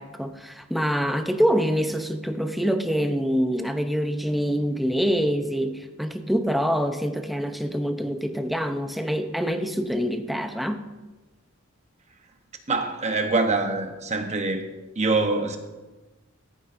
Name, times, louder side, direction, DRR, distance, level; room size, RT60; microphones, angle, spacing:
voice 1, 0.0-10.8, equal, ahead, 0.6 m, -25 dB
voice 2, 12.7-14.6 15.0-15.6, right 3 dB, 35° right, 1.0 m, -24 dB
14.0 x 9.6 x 2.6 m
head